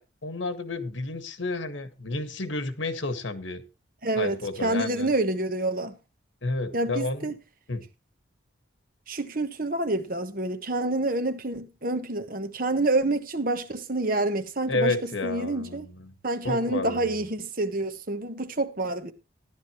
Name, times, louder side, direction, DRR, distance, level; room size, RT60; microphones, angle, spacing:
voice 1, 0.0-3.6 4.2-5.1 6.4-7.3 7.7-7.8 14.7-16.1 16.4-17.1, left 2 dB, 80° left, 1.8 m, -31 dB
voice 2, 4.0-5.9 6.7-7.3 9.1-15.0 15.2-15.9 16.2-19.1, right 2 dB, 45° right, 1.3 m, -28 dB
14.0 x 11.5 x 3.1 m
head